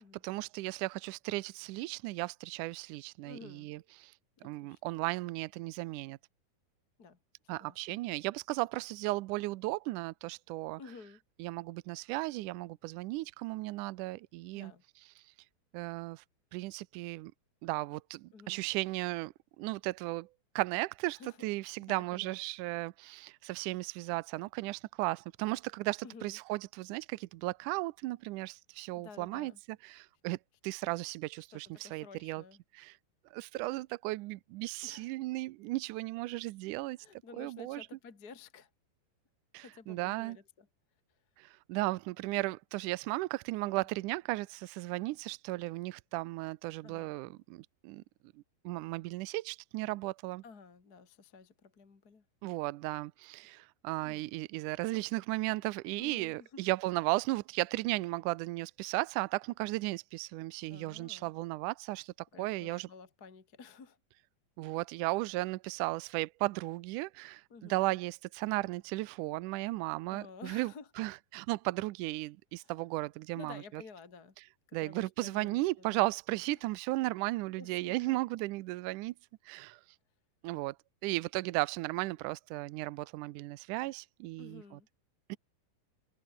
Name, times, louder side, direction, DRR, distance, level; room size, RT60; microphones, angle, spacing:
voice 1, 0.2-4.1 4.4-6.2 7.5-10.8 11.4-14.7 15.7-16.2 16.5-17.3 17.6-20.3 20.6-29.5 29.8-30.4 30.6-32.4 32.7-33.0 33.3-37.9 39.5-40.4 41.4-48.0 48.4-50.4 52.4-62.9 64.6-73.8 74.7-79.1 79.5-79.8 80.4-80.8 81.0-84.8 85.3-85.4, right 20 dB, 85° right, 1.8 m, -35 dB
voice 2, 3.2-3.7 4.4-4.8 7.0-7.2 7.4-8.0 10.8-11.2 14.5-14.8 18.3-18.6 21.1-21.4 21.8-22.4 26.0-26.4 28.9-29.6 31.5-32.6 34.8-35.1 37.0-38.7 39.6-40.7 43.8-43.9 46.8-47.1 50.4-52.2 54.0-54.2 56.0-56.7 60.7-61.3 62.3-64.0 67.5-68.0 70.1-70.9 72.6-72.7 73.3-74.4 74.7-76.0 76.5-76.6 77.6-78.2 84.4-84.9, left 5 dB, 30° left, 2.5 m, -52 dB
omnidirectional pair, 4.3 m